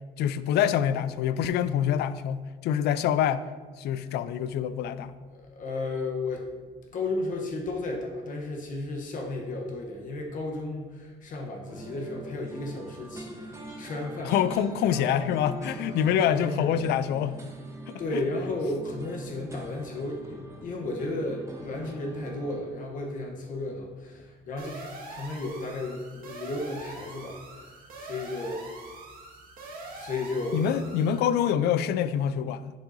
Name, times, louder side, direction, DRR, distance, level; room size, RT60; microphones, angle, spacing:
voice 1, 0.2-3.4 3.8-5.1 14.2-17.4 17.9-18.0 30.5-32.7, left 9 dB, 75° left, 14 dB, 0.4 m, -26 dB
voice 2, 5.3-6.5 6.9-14.3 14.8-15.2 15.8-16.8 18.0-27.4 28.0-28.7 29.9-30.6, left 2 dB, 50° left, 1 dB, 0.9 m, -34 dB
sound 1, 11.6-22.6, right 2 dB, 15° right, 1.0 m, -43 dB
sound 2, 24.6-31.2, right 2 dB, 60° right, 1.8 m, -43 dB
10.5 x 4.8 x 2.7 m, 1.4 s
cardioid pair, 110°, 17 cm